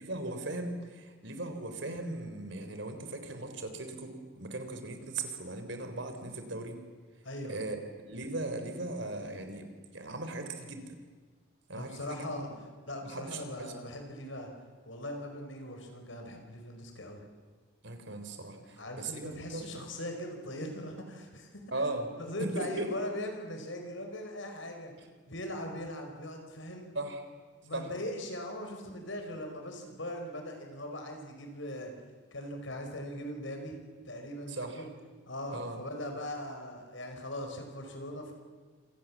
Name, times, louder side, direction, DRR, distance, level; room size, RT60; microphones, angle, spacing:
voice 1, 0.0-6.8 7.5-7.8 8.0-11.0 11.7-12.5 13.1-13.7 17.8-19.7 21.7-22.1 22.5-22.9 27.0-27.2 27.7-27.9 34.5-34.9 35.5-35.8, right 2 dB, 65° right, 7 dB, 3.7 m, -38 dB
voice 2, 7.2-7.6 11.7-12.5 12.9-14.5 14.8-17.2 18.7-21.6 22.2-24.9 25.3-26.9 27.6-31.9 32.3-33.8 34.0-34.9 35.3-38.3, left 1 dB, 70° left, 4 dB, 5.0 m, -40 dB
27.0 x 27.0 x 7.4 m, 1.4 s
head